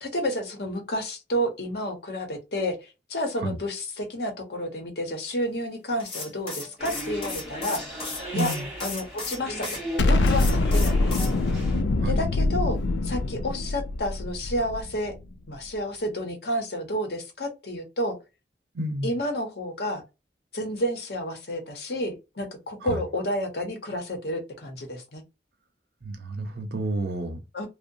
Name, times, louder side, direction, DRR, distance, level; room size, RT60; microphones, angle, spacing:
voice 1, 0.0-7.8 8.3-8.5 8.8-11.2 12.0-15.1 15.5-18.2 19.0-20.0 20.5-25.2 27.5-27.7, equal, 65° left, 0.8 m, -30 dB
sound 1, 6.0-9.8 10.3-11.3, left 3 dB, 30° left, 0.9 m, -35 dB
sound 2, 6.8-11.8, equal, 5° right, 1.6 m, -37 dB
voice 2, 8.3-8.6 12.0-12.2 18.7-19.1 22.8-23.0 26.0-27.4, right 1 dB, 65° right, 0.6 m, -30 dB
Explosion, 10.0-15.2, left 2 dB, 90° left, 0.4 m, -24 dB
2.8 x 2.0 x 2.6 m
head